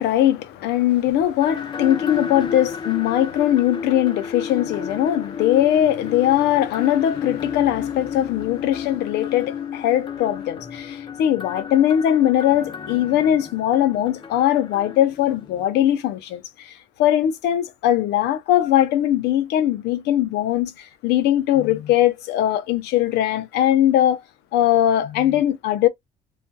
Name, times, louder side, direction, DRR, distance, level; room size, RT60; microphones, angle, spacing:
voice 1, 0.0-16.7 17.0-24.2 24.5-25.9, left 12 dB, 80° left, 0.5 m, -20 dB
sound 1, 1.4-15.7, left 6 dB, 30° left, 0.5 m, -32 dB
2.4 x 2.3 x 2.6 m
cardioid pair, 110°, 17 cm